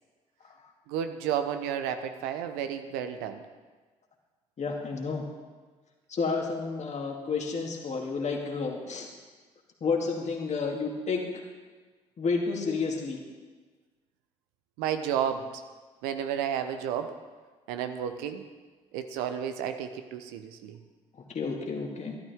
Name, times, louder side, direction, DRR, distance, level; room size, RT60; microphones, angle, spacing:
voice 1, 0.9-3.4 14.8-15.5 16.0-17.1 17.7-18.4 18.9-20.8, right 9 dB, 75° right, 8 dB, 0.8 m, -32 dB
voice 2, 4.6-5.2 6.1-9.1 9.8-11.2 12.2-13.2 21.3-22.1, left 4 dB, 45° left, 1 dB, 2.2 m, -30 dB
13.5 x 12.0 x 3.6 m, 1.4 s
hypercardioid pair, 50°, 16 cm